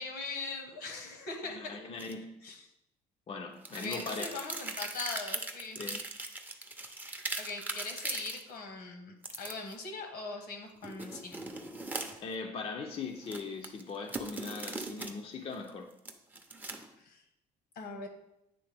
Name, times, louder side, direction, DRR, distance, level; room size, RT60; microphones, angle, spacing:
voice 1, 0.0-1.8 2.4-2.6 3.7-5.8 7.0-11.4 17.0-17.2 17.7-18.1, left 3 dB, 70° left, 4 dB, 1.2 m, -41 dB
voice 2, 1.4-2.3 3.3-4.4 5.8-6.0 12.2-15.9, left 4 dB, 35° left, 3 dB, 0.5 m, -40 dB
sound 1, 2.0-2.1 3.6-8.4 9.2-9.7 10.8-12.3 13.2-15.1 15.5-16.9, right 2 dB, 10° right, 0.6 m, -39 dB
9.0 x 3.3 x 3.4 m, 0.85 s
cardioid pair, 110°, 17 cm